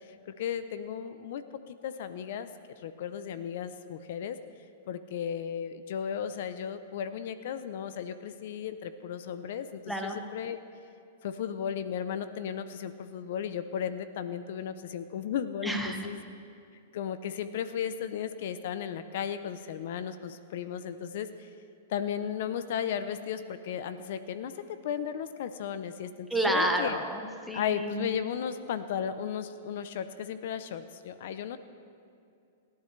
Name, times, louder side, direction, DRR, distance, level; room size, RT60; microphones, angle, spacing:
voice 1, 0.3-2.5 2.8-4.4 4.9-10.6 11.2-16.2 16.9-21.3 21.9-24.5 24.8-27.0 27.5-31.6, left 8 dB, 60° left, 11 dB, 0.7 m, -35 dB
voice 2, 9.9-10.2 15.6-16.1 26.3-28.1, right 1 dB, ahead, 1 dB, 1.4 m, -30 dB
26.0 x 11.5 x 3.3 m, 2.5 s
hypercardioid pair, 140°, 0 cm